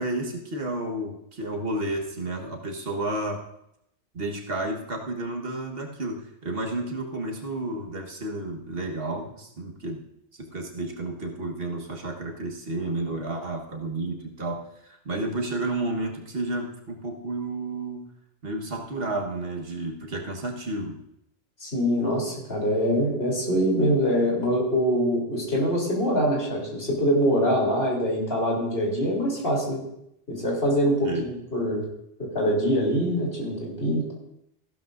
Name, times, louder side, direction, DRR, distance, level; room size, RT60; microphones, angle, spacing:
voice 1, 0.0-3.4 4.1-10.0 10.3-18.0 18.4-21.0 31.0-31.3, right 2 dB, 60° right, 1 dB, 1.6 m, -31 dB
voice 2, 21.6-29.8 30.3-31.9 32.2-34.1, equal, 65° left, -3 dB, 3.6 m, -24 dB
14.5 x 12.0 x 2.6 m, 0.79 s
omnidirectional pair, 1.1 m